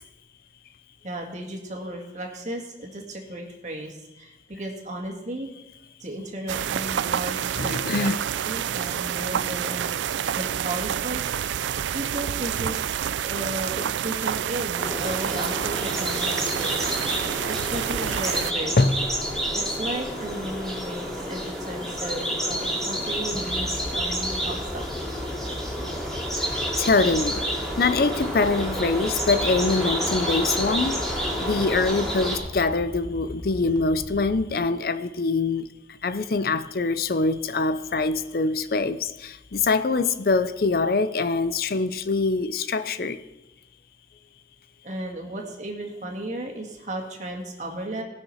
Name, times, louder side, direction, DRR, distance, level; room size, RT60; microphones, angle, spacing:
voice 1, 1.0-5.5 6.0-8.1 8.4-11.3 11.9-13.0 13.2-18.8 19.5-24.8 34.1-34.3 44.8-48.0, right 1 dB, 40° right, 1.9 m, -35 dB
sound 1, 6.5-18.5, right 9 dB, 85° right, 0.3 m, -28 dB
voice 2, 7.6-8.2 13.8-13.9 18.8-19.0 26.5-27.4 27.8-35.7 36.0-43.2, left 3 dB, 55° left, 0.5 m, -24 dB
sound 2, 14.8-32.4, equal, ahead, 2.5 m, -29 dB
sound 3, 23.3-34.4, equal, 25° left, 1.0 m, -38 dB
18.5 x 6.3 x 5.6 m
head